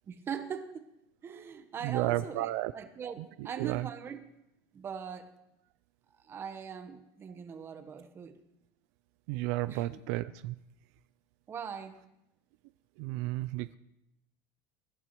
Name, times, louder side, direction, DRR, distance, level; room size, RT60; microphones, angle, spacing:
voice 1, 0.1-0.9 1.2-4.2 4.7-5.3 6.2-8.4 9.7-10.0 11.5-12.0, right 7 dB, 30° right, 1.1 m, -41 dB
voice 2, 1.8-2.7 3.4-3.9 9.3-10.6 13.0-13.8, right 17 dB, 75° right, 0.4 m, -32 dB
23.0 x 12.0 x 3.1 m
cardioid pair, 145°, 9 cm